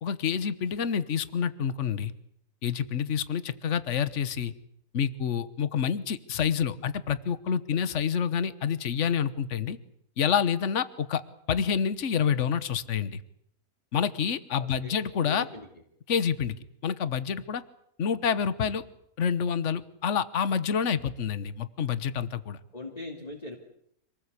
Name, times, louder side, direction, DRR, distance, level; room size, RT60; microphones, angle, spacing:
voice 1, 0.0-2.1 2.6-4.5 4.9-9.8 10.2-11.2 11.5-13.2 13.9-15.4 16.1-16.5 16.8-17.6 18.0-18.8 19.2-22.6, left 7 dB, 55° left, 14 dB, 1.4 m, -28 dB
voice 2, 14.6-14.9 15.3-15.7 22.7-23.6, left 2 dB, 25° left, -1 dB, 2.9 m, -40 dB
26.5 x 19.0 x 8.3 m, 0.72 s
omnidirectional pair, 1.5 m